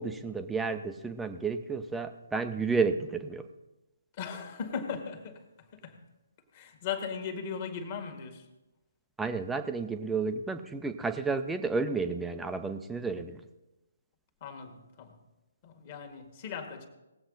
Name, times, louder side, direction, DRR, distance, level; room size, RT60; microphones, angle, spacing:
voice 1, 0.0-3.5 9.2-13.4, right 4 dB, 5° right, 7 dB, 0.7 m, -31 dB
voice 2, 4.2-5.4 5.7-6.0 6.5-8.4 14.4-15.2 15.6-16.9, left 6 dB, 35° left, 4 dB, 1.8 m, -38 dB
19.0 x 7.8 x 4.0 m, 1.0 s
figure-of-eight pair, 140°, 0 cm